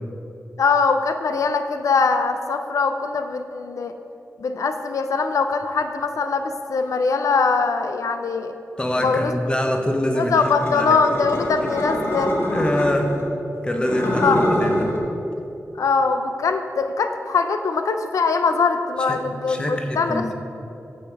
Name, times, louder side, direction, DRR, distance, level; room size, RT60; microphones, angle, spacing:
voice 1, 0.6-3.9 4.4-8.5 9.0-9.4 10.1-12.3 14.2-14.4 15.8-20.3, left 4 dB, 85° left, 7 dB, 0.5 m, -22 dB
voice 2, 8.8-10.3 10.6-11.0 12.5-13.1 13.6-14.9 19.1-19.2 19.5-20.3, left 1 dB, 20° left, 3 dB, 0.9 m, -24 dB
sound 1, 10.4-13.2 13.7-15.0, left 1 dB, 50° left, 1.4 m, -24 dB
9.6 x 7.2 x 4.7 m, 2.9 s
wide cardioid pair, 115°, 5 cm